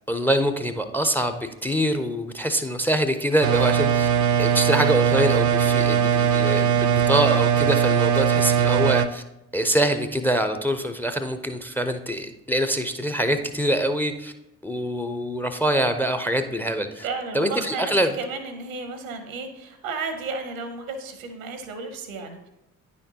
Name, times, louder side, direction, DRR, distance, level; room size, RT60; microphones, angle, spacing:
voice 1, 0.1-4.1 4.4-9.2 9.5-14.3 14.6-17.1 17.3-18.1, right 1 dB, 5° left, 9 dB, 0.5 m, -24 dB
sound 1, 3.4-9.1, right 8 dB, 45° right, 0.5 m, -20 dB
voice 2, 17.0-22.5, right 4 dB, 80° right, 8 dB, 0.9 m, -33 dB
9.8 x 4.3 x 2.8 m, 0.89 s
figure-of-eight pair, 45°, 41 cm